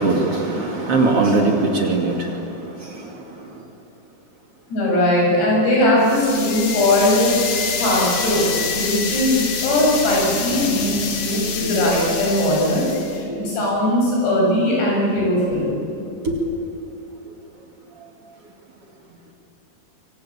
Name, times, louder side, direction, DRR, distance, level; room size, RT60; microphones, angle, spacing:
voice 1, 0.0-2.3 16.2-16.3, right 3 dB, 40° right, 2 dB, 2.7 m, -19 dB
voice 2, 4.7-8.5 8.7-15.7, left 1 dB, 90° left, -3 dB, 9.4 m, -19 dB
sound 1, 6.0-13.2, left 5 dB, 45° left, 2.5 m, -26 dB
25.5 x 24.5 x 8.6 m, 2.9 s
omnidirectional pair, 4.6 m